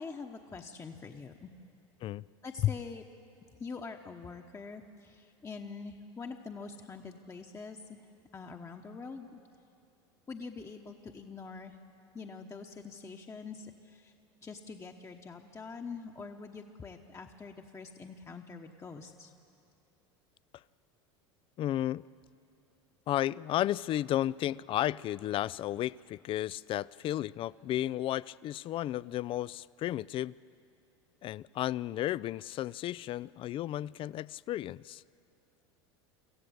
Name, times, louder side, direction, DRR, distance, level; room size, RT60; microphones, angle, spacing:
voice 1, 0.0-1.5 2.4-3.0 3.6-8.1 8.3-9.4 10.3-11.8 12.1-14.1 14.4-19.3, left 4 dB, 20° left, 3 dB, 1.1 m, -45 dB
voice 2, 21.6-22.0 23.1-30.3 31.2-35.0, left 13 dB, 40° left, 22 dB, 0.4 m, -33 dB
25.0 x 15.0 x 8.0 m, 2.6 s
hypercardioid pair, 85°, 14 cm